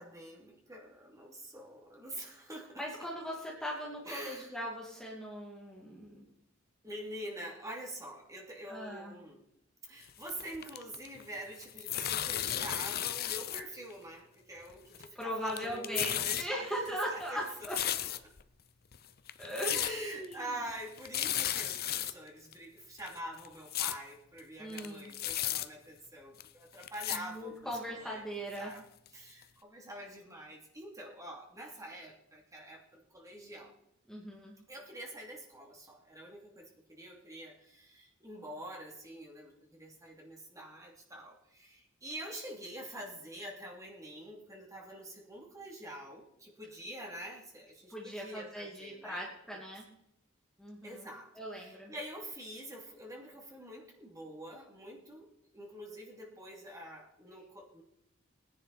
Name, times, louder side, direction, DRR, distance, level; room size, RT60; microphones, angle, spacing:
voice 1, 0.0-2.8 4.0-4.6 6.8-9.4 9.8-17.4 19.7-28.8 29.1-33.7 34.7-49.6 50.8-55.3 55.5-57.8, right 1 dB, 15° right, -1 dB, 2.9 m, -46 dB
voice 2, 2.8-6.2 8.7-9.2 15.1-17.8 19.4-20.6 24.6-25.1 27.1-28.7 34.1-34.5 47.9-49.8 50.6-51.1 51.4-51.9, equal, ahead, -3 dB, 2.4 m, -39 dB
sound 1, 10.1-11.3 11.5-13.6 13.9-14.0 14.7-15.2 15.5-16.4 16.9-18.4 18.9-19.0 19.3-19.9 20.2-20.3 20.7-20.8 21.0-22.1 22.5-22.6 23.0-24.0 24.4-24.5 24.7-25.7 26.4-26.5 26.8-27.2 27.7-27.8 28.6-28.7 29.1-29.2 29.4-29.5, left 12 dB, 50° left, 0.7 m, -34 dB
20.0 x 10.5 x 4.3 m, 0.78 s
head